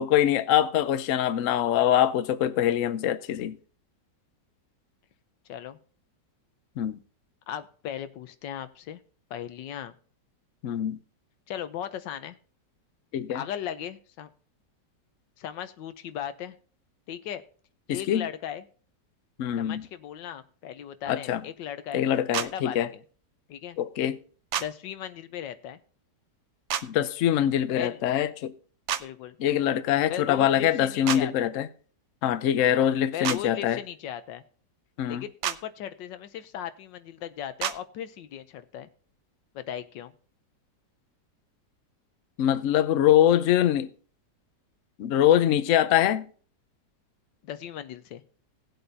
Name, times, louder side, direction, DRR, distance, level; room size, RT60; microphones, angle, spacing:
voice 1, 0.0-3.6 6.8-7.0 10.6-11.0 13.1-13.4 17.9-18.3 19.4-19.8 21.1-21.4 21.9-22.9 23.8-24.2 26.8-28.5 29.4-31.7 32.2-33.8 35.0-35.2 42.4-43.9 45.0-46.3, left 11 dB, 60° left, 0.8 m, -23 dB
voice 2, 7.5-9.0 9.3-9.9 11.5-12.4 13.3-14.3 15.4-16.6 17.1-17.4 17.9-18.6 19.6-22.0 22.4-23.0 23.5-23.8 24.6-25.8 27.7-28.0 29.0-29.4 30.1-31.5 32.7-34.4 35.0-38.9 39.5-40.1 47.4-48.2, left 10 dB, 90° left, 1.5 m, -37 dB
sound 1, 22.3-22.5 24.5-24.7 26.7-26.9 28.9-29.0 31.1-31.2 33.2-33.4 35.4-35.6 37.6-37.8, right 9 dB, 75° right, 0.6 m, -28 dB
18.5 x 7.9 x 2.7 m
omnidirectional pair, 1.9 m